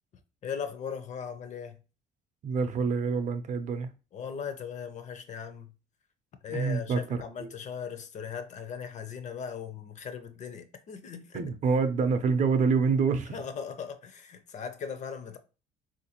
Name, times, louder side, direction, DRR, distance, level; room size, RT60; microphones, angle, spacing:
voice 1, 0.4-1.8 4.1-5.7 6.4-11.4 13.3-15.4, left 7 dB, 45° left, 0.5 m, -38 dB
voice 2, 2.4-3.9 6.5-7.5 11.3-13.4, right 5 dB, 45° right, 0.5 m, -27 dB
3.5 x 2.5 x 2.8 m
cardioid pair, 110°, 17 cm